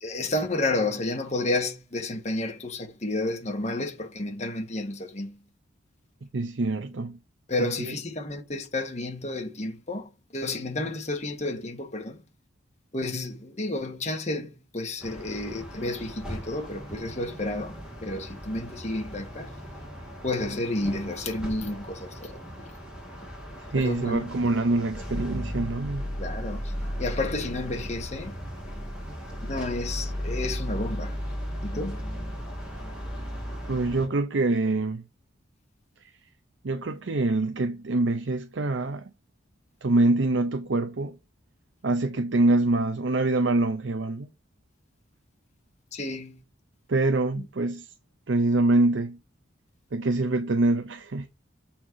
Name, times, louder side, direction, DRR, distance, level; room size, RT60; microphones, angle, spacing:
voice 1, 0.0-5.4 7.5-12.2 12.9-19.5 20.2-22.7 23.7-24.3 26.2-26.7 27.0-28.3 29.4-31.2 31.6-32.0 45.9-46.4 47.4-47.5, left 2 dB, 35° left, 1.5 m, -31 dB
voice 2, 6.3-7.2 7.6-7.9 23.7-26.0 33.7-35.0 36.6-39.1 39.8-41.2 41.8-44.3 46.9-47.9 48.3-49.2 49.9-51.3, right 2 dB, 70° right, 0.7 m, -25 dB
sound 1, 15.0-34.1, equal, 5° right, 2.4 m, -36 dB
7.1 x 4.4 x 4.6 m
head